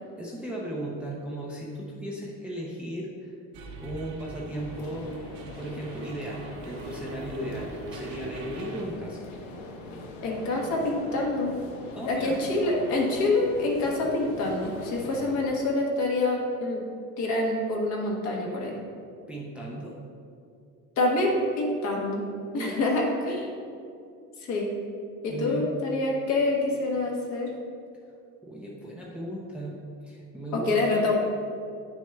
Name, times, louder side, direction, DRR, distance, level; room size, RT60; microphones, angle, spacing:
voice 1, 0.2-3.3 3.8-5.1 5.4-9.3 11.9-12.4 19.3-19.9 22.6-22.8 25.3-25.7 28.4-31.1, right 1 dB, 5° right, -4 dB, 0.5 m, -36 dB
sound 1, 3.5-8.8, right 2 dB, 85° right, 1.2 m, -42 dB
sound 2, 4.5-15.4, left 2 dB, 75° left, 1.1 m, -42 dB
voice 2, 10.2-11.5 12.0-16.8 17.2-18.8 21.0-22.2 22.5-23.5 24.4-24.7 25.2-27.5 30.5-31.1, left 2 dB, 50° left, -1 dB, 1.3 m, -26 dB
9.8 x 6.1 x 2.3 m, 2.4 s
cardioid pair, 160°, 35 cm